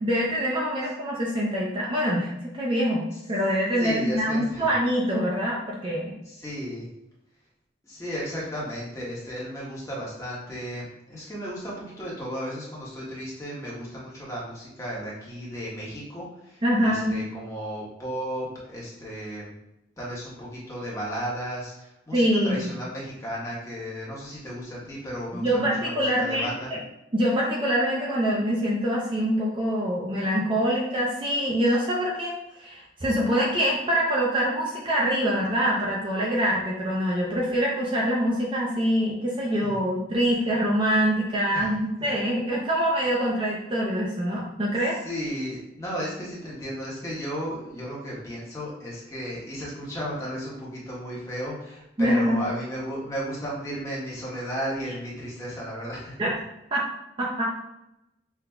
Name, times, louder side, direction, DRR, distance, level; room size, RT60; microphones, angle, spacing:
voice 1, 0.0-3.0 3.3-6.1 16.6-17.1 22.1-22.6 25.3-26.8 27.1-45.0 52.0-52.4 56.2-56.3 56.7-56.9 57.2-57.4, equal, 25° right, -4 dB, 0.6 m, -25 dB
voice 2, 3.8-4.7 6.3-6.9 7.8-19.5 20.0-26.7 39.6-39.8 41.5-41.7 45.0-56.2, equal, 15° left, -6 dB, 1.1 m, -34 dB
5.7 x 2.7 x 2.3 m, 0.87 s
head